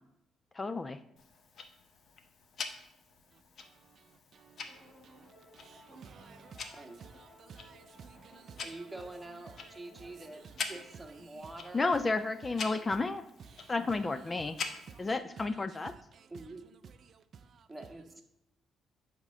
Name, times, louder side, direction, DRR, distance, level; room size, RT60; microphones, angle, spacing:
voice 1, 0.6-1.0 11.7-13.2 13.7-14.6 15.0-15.9, left 3 dB, 25° left, 0.4 m, -31 dB
Tick-tock, 1.2-15.2, left 5 dB, 60° left, 1.0 m, -46 dB
voice 2, 3.3-8.9 9.5-11.8 13.4-16.5 16.8-17.7, right 6 dB, 55° right, 0.4 m, -55 dB
sound 1, 4.7-14.1, left 1 dB, 10° left, 3.4 m, -60 dB
voice 3, 8.6-11.9 12.6-12.9 16.3-16.6 17.7-18.2, right 2 dB, 10° right, 1.4 m, -46 dB
9.0 x 3.7 x 6.6 m
cardioid pair, 90°, 0 cm